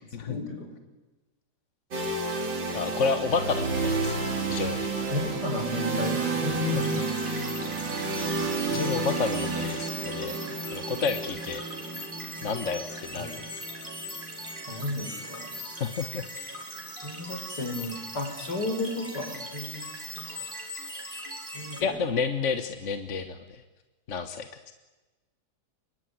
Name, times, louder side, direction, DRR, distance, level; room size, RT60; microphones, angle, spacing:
voice 1, 0.0-0.7 5.1-7.0 13.1-13.3 14.7-15.5 17.0-20.5 21.5-22.0, left 2 dB, 60° left, 4 dB, 5.7 m, -33 dB
sound 1, 1.9-15.8, right 3 dB, 75° right, 3.8 m, -31 dB
voice 2, 2.6-4.1 4.5-4.9 8.7-11.6 12.4-13.4 15.8-16.3 21.8-23.6 24.1-24.7, left 5 dB, 45° left, 8 dB, 1.5 m, -30 dB
sound 2, 6.7-21.8, equal, 25° right, 4.6 m, -40 dB
26.5 x 23.0 x 9.6 m, 1.2 s
omnidirectional pair, 2.0 m